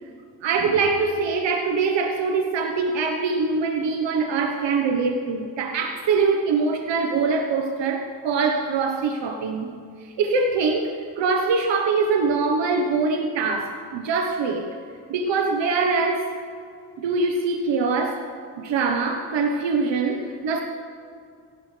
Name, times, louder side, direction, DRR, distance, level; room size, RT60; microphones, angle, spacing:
voice 1, 0.4-9.7 10.2-14.7 15.1-16.3 17.0-20.6, right 4 dB, 80° right, 3 dB, 1.3 m, -23 dB
28.5 x 12.0 x 3.4 m, 2.3 s
cardioid pair, 80°, 43 cm